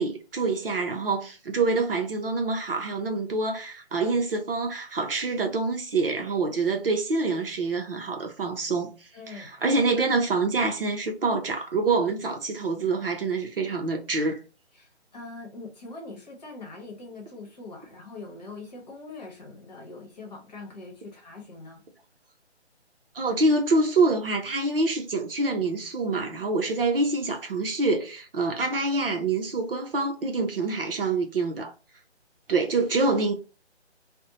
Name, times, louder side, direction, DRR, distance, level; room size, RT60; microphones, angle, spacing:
voice 1, 0.0-14.4 23.1-31.7 32.5-33.3, right 3 dB, 55° right, 0.6 m, -26 dB
voice 2, 9.1-9.5 14.7-21.8, left 3 dB, 35° left, 1.0 m, -42 dB
2.5 x 2.1 x 2.8 m
figure-of-eight pair, 150°, 34 cm